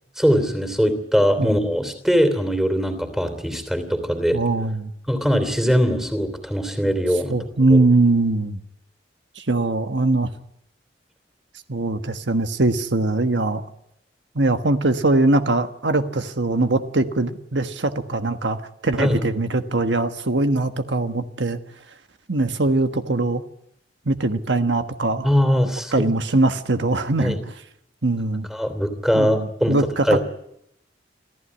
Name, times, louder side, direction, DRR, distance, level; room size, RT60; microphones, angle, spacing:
voice 1, 0.2-4.4 5.1-7.4 7.7-7.8 19.0-19.2 25.2-26.1 27.2-27.4 28.5-29.8 30.1-30.2, equal, ahead, 9 dB, 3.0 m, -21 dB
voice 2, 4.3-4.9 7.3-8.6 9.4-10.3 11.7-13.6 14.3-21.6 22.3-23.4 24.1-25.3 25.9-27.5 28.0-28.5 29.1-30.2, right 2 dB, 80° right, 8 dB, 1.4 m, -21 dB
26.5 x 15.0 x 9.8 m, 0.79 s
head